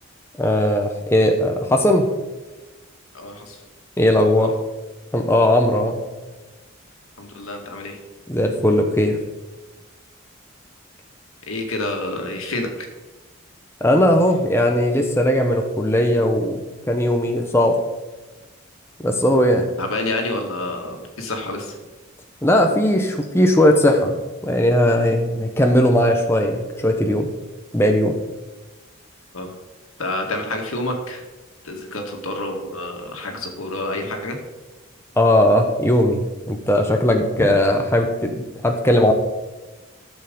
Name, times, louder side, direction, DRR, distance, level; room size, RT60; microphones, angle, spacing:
voice 1, 0.4-2.1 4.0-4.5 5.1-6.0 8.3-9.2 13.8-16.6 16.9-17.7 19.0-19.7 22.4-24.2 24.4-27.3 27.7-28.2 35.2-39.1, left 1 dB, 10° left, 3 dB, 0.9 m, -18 dB
voice 2, 3.1-3.6 4.4-4.5 7.2-8.0 11.5-12.9 19.8-21.8 29.3-29.5 30.0-31.2 31.6-34.4, left 2 dB, 80° left, 3 dB, 2.1 m, -28 dB
13.0 x 6.9 x 5.3 m, 1.2 s
head